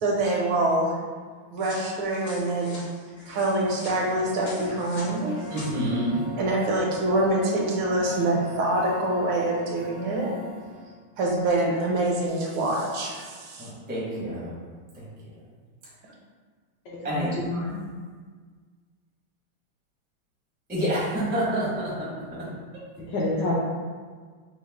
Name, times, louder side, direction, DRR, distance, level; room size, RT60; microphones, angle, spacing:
voice 1, 0.0-0.9 1.5-2.8 3.3-5.3 6.4-10.3 11.2-13.7, right 2 dB, 75° right, -2 dB, 1.4 m, -25 dB
sound 1, 1.6-5.7, left 1 dB, 60° left, 0.6 m, -44 dB
sound 2, 3.2-11.0, left 2 dB, 60° right, 0.7 m, -40 dB
voice 2, 5.5-6.2 13.6-14.5 14.9-15.0 17.0-17.3 20.7-22.1, right 1 dB, 15° right, -8 dB, 0.3 m, -27 dB
voice 3, 16.9-17.8 23.0-23.6, left 1 dB, 75° left, -6 dB, 1.0 m, -28 dB
5.2 x 2.0 x 3.5 m, 1.6 s
omnidirectional pair, 2.4 m